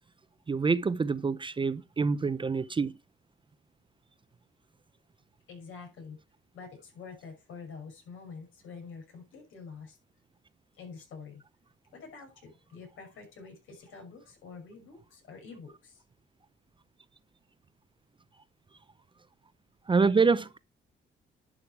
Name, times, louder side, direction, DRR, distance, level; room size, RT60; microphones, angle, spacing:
voice 1, 0.5-3.0 19.9-20.6, right 4 dB, 25° right, 0.7 m, -26 dB
voice 2, 5.5-6.2 6.5-10.0 10.8-11.4 11.9-16.0, left 5 dB, 80° left, 6.3 m, -47 dB
11.0 x 6.5 x 4.6 m
cardioid pair, 90°, 20 cm